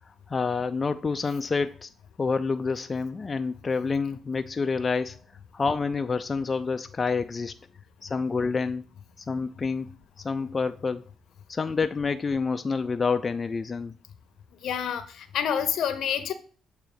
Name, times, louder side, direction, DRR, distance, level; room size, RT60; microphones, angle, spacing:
voice 1, 0.3-1.9 2.2-5.2 5.5-7.6 8.0-8.8 9.3-9.9 10.2-11.0 11.5-13.9, left 4 dB, 30° left, 0.3 m, -28 dB
voice 2, 14.6-16.3, left 8 dB, 75° left, 0.7 m, -28 dB
7.5 x 3.0 x 4.8 m
cardioid pair, 90°, 0 cm